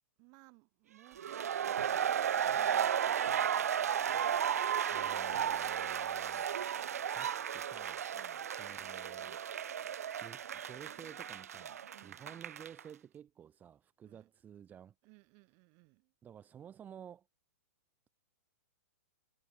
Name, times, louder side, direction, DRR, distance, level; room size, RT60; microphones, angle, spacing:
voice 1, 0.2-3.7 8.1-8.5 11.9-12.3 14.0-14.3 15.0-16.1, right 35 dB, 40° right, 3.9 m, -62 dB
sound 1, 1.2-12.8, right 9 dB, 70° right, 0.5 m, -34 dB
voice 2, 4.9-6.4 7.1-8.0 8.4-9.4 10.2-14.9 16.2-17.2, right 9 dB, 20° right, 1.3 m, -53 dB
hypercardioid pair, 115°, 8 cm